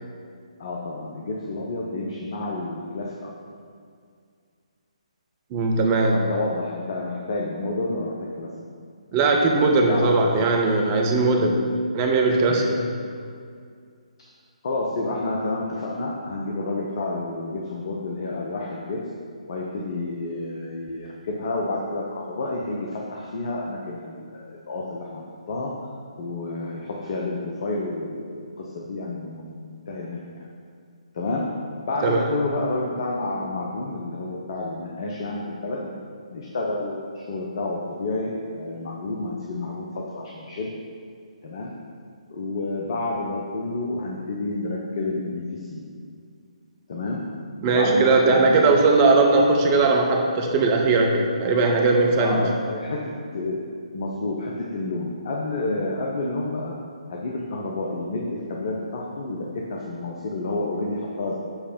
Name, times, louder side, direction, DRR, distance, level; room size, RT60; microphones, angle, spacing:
voice 1, 0.6-3.3 6.1-8.5 9.2-10.5 12.5-12.6 14.6-19.0 19.5-25.7 26.2-30.2 31.1-31.5 31.8-35.9 36.3-40.7 41.4-41.7 42.3-45.8 46.9-47.2 47.6-48.6 52.2-53.0 53.3-53.6 53.9-56.7 57.1-61.3, left 2 dB, 45° left, -2 dB, 0.8 m, -29 dB
voice 2, 5.5-6.2 9.1-12.9 32.0-32.2 47.6-52.5, right 3 dB, 25° right, 2 dB, 0.7 m, -19 dB
7.2 x 3.3 x 5.1 m, 2.2 s
figure-of-eight pair, 135°, 4 cm